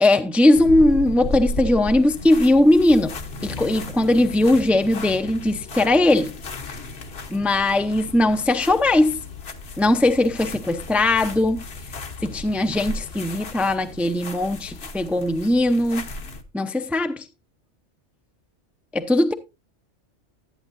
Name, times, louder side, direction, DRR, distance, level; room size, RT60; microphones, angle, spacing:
voice 1, 0.0-3.1 3.4-6.3 7.3-9.2 9.8-11.6 12.2-16.0 16.5-17.2 18.9-19.3, left 1 dB, ahead, 0.4 m, -19 dB
sound 1, 0.5-16.4, left 2 dB, 60° left, 1.2 m, -35 dB
13.5 x 9.1 x 2.6 m
omnidirectional pair, 1.2 m